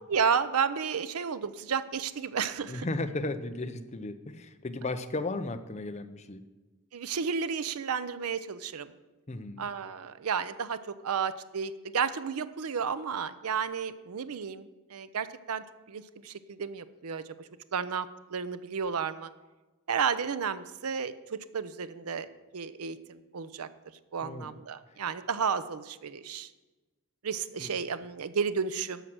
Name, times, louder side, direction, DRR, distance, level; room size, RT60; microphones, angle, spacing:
voice 1, 0.1-2.8 6.9-8.9 9.6-19.3 19.9-23.7 24.1-26.5 27.2-29.0, right 6 dB, 80° right, 14 dB, 0.6 m, -32 dB
voice 2, 2.7-6.4 9.3-9.7 24.2-24.5 27.6-27.7, left 2 dB, 30° left, 9 dB, 0.6 m, -35 dB
11.5 x 6.3 x 6.1 m, 1.2 s
head